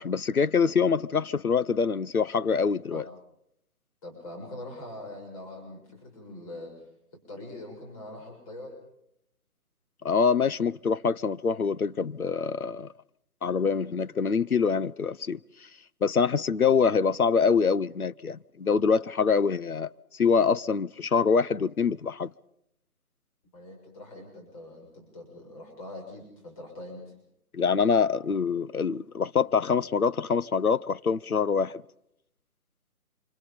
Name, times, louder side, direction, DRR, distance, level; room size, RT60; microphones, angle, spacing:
voice 1, 0.0-3.0 10.0-12.9 13.4-15.4 16.0-19.9 20.2-22.3 27.5-31.8, left 5 dB, 70° left, 1.0 m, -25 dB
voice 2, 4.0-6.7 7.3-8.7 23.5-27.1, left 1 dB, 25° left, 6.9 m, -43 dB
27.5 x 26.0 x 5.3 m
figure-of-eight pair, 150°, 45 cm